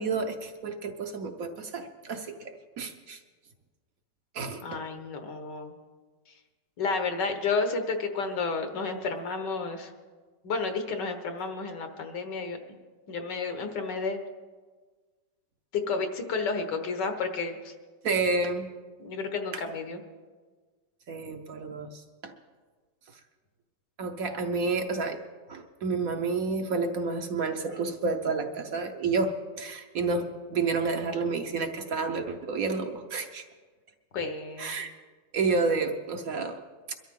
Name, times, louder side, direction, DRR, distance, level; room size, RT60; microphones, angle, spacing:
voice 1, 0.0-3.2 4.3-4.8 18.0-18.7 19.5-19.6 21.1-22.3 24.0-25.2 25.5-33.4 34.6-34.9 35.3-36.6 36.9-37.0, right 4 dB, 55° right, 5 dB, 1.2 m, -30 dB
voice 2, 4.6-5.7 6.8-9.9 10.4-12.6 13.1-14.2 15.7-17.7 19.0-20.0 34.1-34.8, left 4 dB, 75° left, 6 dB, 1.9 m, -31 dB
22.5 x 13.0 x 3.7 m, 1.4 s
omnidirectional pair, 1.9 m